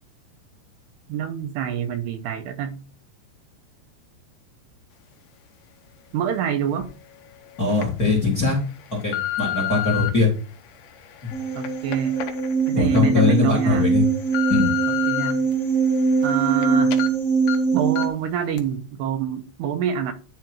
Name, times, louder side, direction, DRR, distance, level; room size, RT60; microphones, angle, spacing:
voice 1, 1.1-2.8 6.1-6.9 11.6-12.2 12.7-13.9 14.9-15.4 16.2-17.0 17.7-20.1, right 8 dB, 80° right, 2.7 m, -26 dB
sound 1, 6.8-6.9 7.5-7.8 8.5-10.1 10.8-13.1 13.5-13.6 14.0-15.3 15.8-16.6 16.9-17.1 17.5-17.6 18.0-18.2 18.6-18.7, left 14 dB, 75° left, 2.0 m, -30 dB
voice 2, 7.6-8.6 8.9-10.3 12.7-14.0 14.5-14.7, left 4 dB, 30° left, 2.1 m, -21 dB
sound 2, 11.3-18.1, right 5 dB, 5° left, 1.4 m, -22 dB
11.0 x 3.9 x 4.5 m
omnidirectional pair, 5.1 m